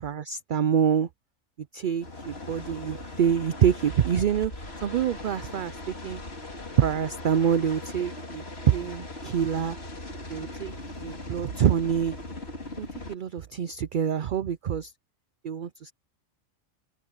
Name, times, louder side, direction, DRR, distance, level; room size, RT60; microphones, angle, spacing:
voice 1, 0.0-1.1 1.7-4.5 4.8-6.2 6.8-9.8 10.3-12.1 12.8-14.9 15.4-15.9, right 8 dB, 55° right, 0.6 m, -26 dB
sound 1, 2.0-13.1, left 2 dB, 55° left, 3.2 m, -39 dB
open air
omnidirectional pair, 1.3 m